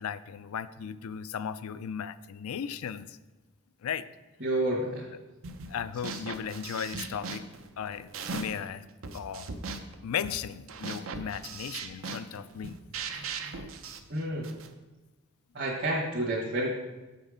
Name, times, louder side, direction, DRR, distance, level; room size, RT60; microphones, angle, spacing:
voice 1, 0.0-3.2 3.8-4.1 5.7-7.5 7.8-8.9 9.1-9.5 10.0-12.8 13.1-13.4, left 8 dB, 80° left, 14 dB, 0.4 m, -36 dB
voice 2, 4.4-5.1 6.1-6.2 14.1-14.6 15.5-16.7, right 1 dB, 50° right, -5 dB, 1.4 m, -30 dB
sound 1, 5.4-5.7 6.0-8.7 9.0-14.7, right 4 dB, 70° right, 0.6 m, -39 dB
7.3 x 5.7 x 5.0 m, 1.2 s
head